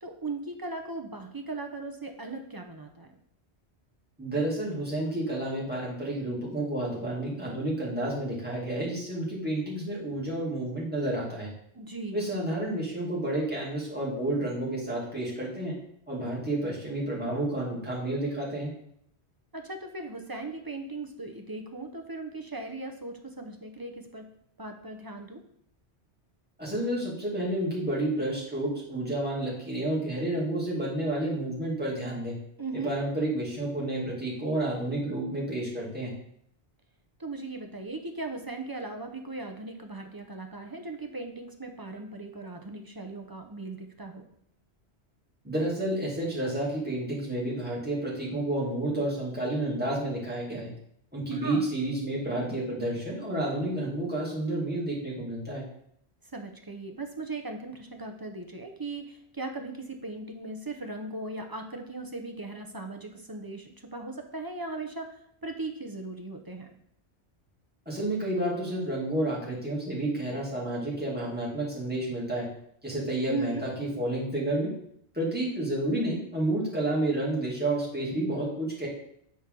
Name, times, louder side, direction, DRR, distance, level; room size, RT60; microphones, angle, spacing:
voice 1, 0.0-3.2 11.7-12.2 19.5-24.2 24.6-25.4 32.6-32.9 37.2-44.3 51.3-51.6 56.3-66.7 73.2-73.7, right 2 dB, 25° right, 4 dB, 0.6 m, -38 dB
voice 2, 4.2-11.5 12.1-15.8 16.1-18.7 26.6-32.4 32.8-36.1 45.4-50.7 51.1-55.6 67.9-72.5 72.8-74.7 75.1-78.9, right 1 dB, 10° right, -6 dB, 2.0 m, -30 dB
8.7 x 4.3 x 3.7 m, 0.69 s
omnidirectional pair, 1.1 m